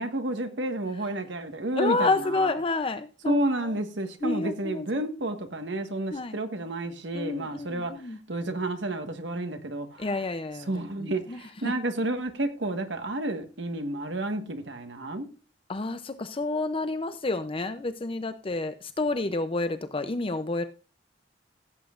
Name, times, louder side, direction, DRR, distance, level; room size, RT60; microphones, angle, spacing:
voice 1, 0.0-2.5 3.2-7.9 8.3-10.1 10.7-15.3, right 1 dB, 75° right, 1.5 m, -30 dB
voice 2, 1.8-3.8 4.2-5.0 6.1-6.4 7.1-8.2 10.0-11.7 15.7-20.6, left 3 dB, 30° left, 0.6 m, -30 dB
16.0 x 8.3 x 2.5 m
head